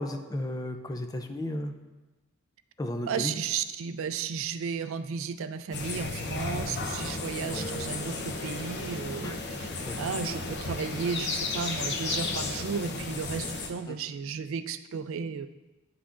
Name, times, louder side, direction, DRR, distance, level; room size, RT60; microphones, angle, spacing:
voice 1, 0.0-1.7 2.8-3.3 7.5-7.7 9.2-9.3 9.8-10.0 13.9-14.0, left 1 dB, 15° left, 6 dB, 0.4 m, -34 dB
voice 2, 3.1-9.7 10.0-15.5, right 6 dB, 65° right, 12 dB, 0.4 m, -34 dB
sound 1, 5.7-13.7, left 3 dB, 55° left, 0.7 m, -34 dB
9.5 x 5.8 x 2.5 m, 1.1 s
head